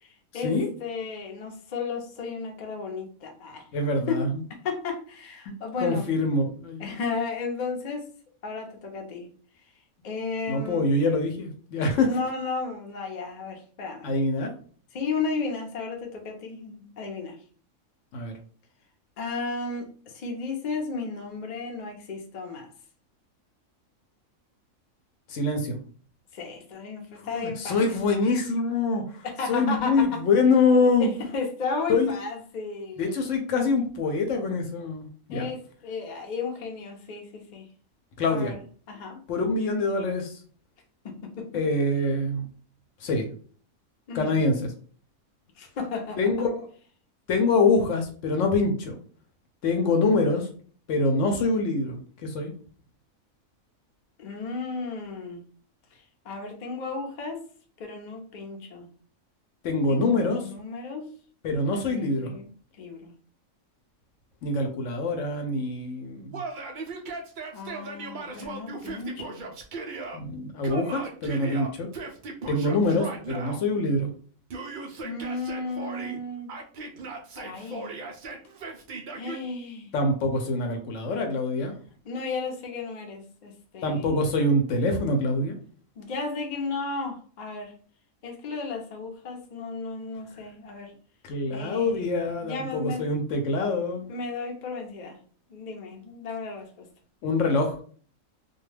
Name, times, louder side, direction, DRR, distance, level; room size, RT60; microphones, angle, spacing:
voice 1, 0.0-3.6 4.1-4.2 4.5-6.1 6.8-8.0 8.4-9.3 10.0-10.9 12.0-14.1 14.9-17.4 19.2-22.7 26.3-28.0 29.2-30.2 31.0-33.1 35.3-37.6 38.3-38.6 38.9-39.2 41.0-41.6 44.1-44.4 45.6-46.2 54.2-55.4 55.9-57.4 57.8-58.9 59.9-61.1 61.7-62.5 62.8-63.1 64.9-65.0 67.5-69.4 75.0-76.5 77.4-77.9 79.1-79.9 82.0-84.2 86.0-87.7 88.2-90.9 91.5-92.0 92.4-93.1 94.1-95.2 95.5-96.9, left 4 dB, 50° left, 2 dB, 0.5 m, -34 dB
voice 2, 3.7-4.4 5.5-5.6 5.8-6.9 10.5-12.1 14.0-14.5 18.1-18.3 25.3-25.8 27.2-31.1 31.9-32.1 33.0-35.5 38.2-38.5 39.3-40.3 41.5-42.5 43.0-43.3 44.1-44.7 46.2-46.7 47.3-49.0 49.6-50.5 50.9-52.5 59.6-60.5 61.4-62.3 64.4-66.4 70.1-71.9 72.5-74.1 79.9-81.7 83.8-85.6 91.2-94.0 97.2-97.8, left 3 dB, 70° left, 4 dB, 0.9 m, -25 dB
Yell, 66.3-70.2 70.6-73.6 74.5-76.2 76.5-79.4, right 3 dB, 85° right, 0.4 m, -37 dB
2.3 x 2.2 x 3.2 m, 0.44 s
omnidirectional pair, 1.4 m